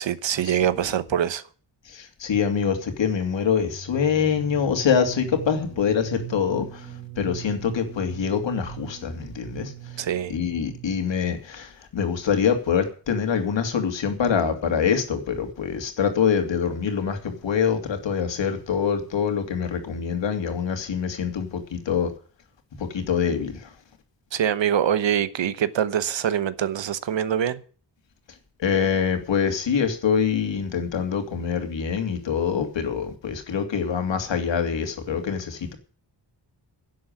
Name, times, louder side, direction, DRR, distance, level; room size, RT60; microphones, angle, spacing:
voice 1, 0.0-1.4 10.0-10.3 24.3-27.6, right 9 dB, 85° right, 1.1 m, -24 dB
voice 2, 1.9-10.0 10.3-22.1 22.8-23.7 28.6-35.7, left 7 dB, 85° left, 2.8 m, -25 dB
sound 1, 3.6-11.3, right 10 dB, 40° right, 4.2 m, -40 dB
11.0 x 7.8 x 9.0 m
wide cardioid pair, 180°, 43 cm